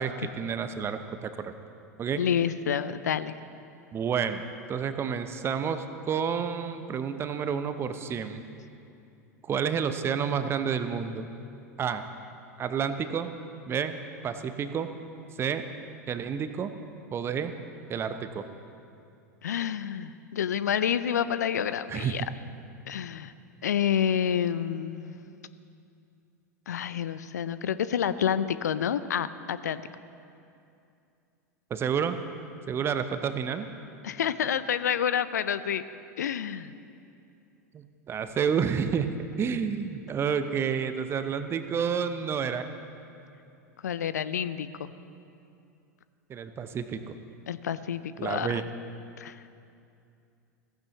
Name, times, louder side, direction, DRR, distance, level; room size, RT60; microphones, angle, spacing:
voice 1, 0.0-1.5 2.0-2.2 3.9-8.4 9.4-11.3 11.8-12.0 12.6-13.3 13.7-14.0 14.2-14.9 15.4-15.7 16.1-16.7 17.1-17.5 17.9-18.4 21.9-22.1 31.7-32.2 32.7-33.7 37.7-39.1 39.4-42.7 46.3-47.1 48.2-48.6, right 7 dB, 25° right, 10 dB, 0.7 m, -30 dB
voice 2, 2.2-3.3 19.4-22.2 22.9-23.3 23.6-25.2 26.7-29.8 34.0-35.8 36.2-36.7 43.8-44.9 47.5-48.6 49.2-49.4, left 8 dB, 75° left, 14 dB, 0.4 m, -28 dB
15.5 x 15.0 x 3.1 m, 2.6 s
figure-of-eight pair, 90°, 9 cm